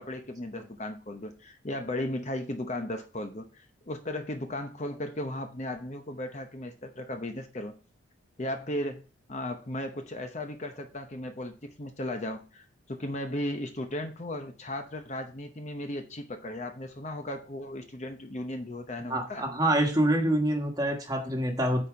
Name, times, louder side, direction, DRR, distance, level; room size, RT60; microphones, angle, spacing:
voice 1, 0.0-7.7 8.4-9.0 9.3-19.5, left 1 dB, 35° left, 6 dB, 0.8 m, -36 dB
voice 2, 19.1-21.9, right 1 dB, 20° right, 3 dB, 1.3 m, -26 dB
8.9 x 4.4 x 4.7 m, 0.35 s
head